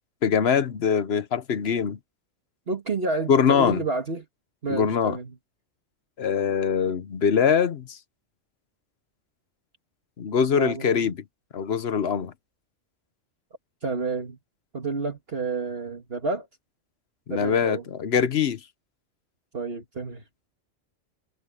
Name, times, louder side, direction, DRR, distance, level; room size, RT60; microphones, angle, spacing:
voice 1, 0.2-2.0 3.3-3.8 4.7-5.2 6.2-8.0 10.2-11.1 11.5-12.3 17.3-18.6, left 7 dB, 55° left, 1.1 m, -23 dB
voice 2, 2.7-4.3 4.6-5.4 10.6-11.1 13.8-14.4 14.7-16.5 17.3-17.9 19.5-20.2, right 3 dB, 50° right, 2.3 m, -30 dB
omnidirectional pair, 1.3 m